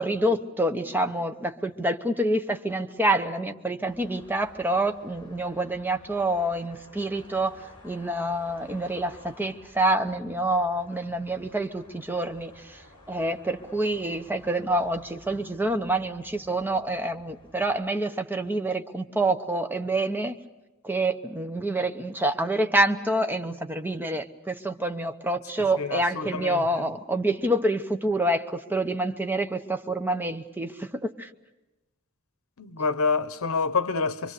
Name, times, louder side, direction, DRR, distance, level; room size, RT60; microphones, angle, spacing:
voice 1, 0.0-12.8 13.1-20.3 20.8-31.3, right 1 dB, 10° right, 0.9 m, -27 dB
sound 1, 3.8-17.8, left 1 dB, 25° left, 7.7 m, -53 dB
voice 2, 25.8-26.8 32.6-34.3, left 4 dB, 70° left, 0.9 m, -27 dB
25.5 x 24.0 x 6.7 m
head